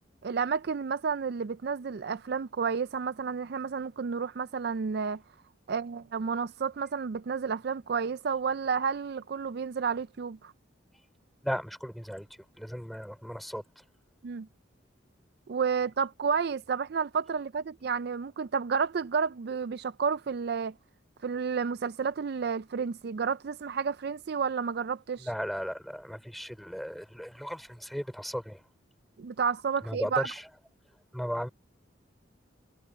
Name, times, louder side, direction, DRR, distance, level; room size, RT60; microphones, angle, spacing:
voice 1, 0.2-5.2 5.7-10.5 14.2-14.5 15.5-20.7 21.2-25.3 29.2-30.3, right 6 dB, 55° right, 0.4 m, -31 dB
voice 2, 11.4-12.3 12.6-13.6 25.2-28.6 29.8-30.5 31.1-31.5, equal, ahead, 3.6 m, -35 dB
head